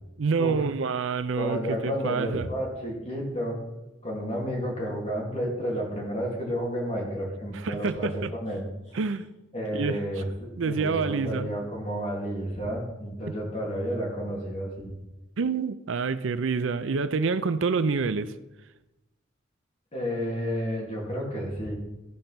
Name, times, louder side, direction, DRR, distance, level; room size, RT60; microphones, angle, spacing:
voice 1, 0.2-2.5 7.5-8.3 8.9-9.3 9.7-10.0 10.6-11.5 15.4-18.4, right 4 dB, 75° right, 0.5 m, -27 dB
voice 2, 1.4-3.6 4.0-8.7 9.5-14.9 19.9-21.7, equal, 35° left, 2.8 m, -31 dB
14.5 x 5.3 x 5.9 m
head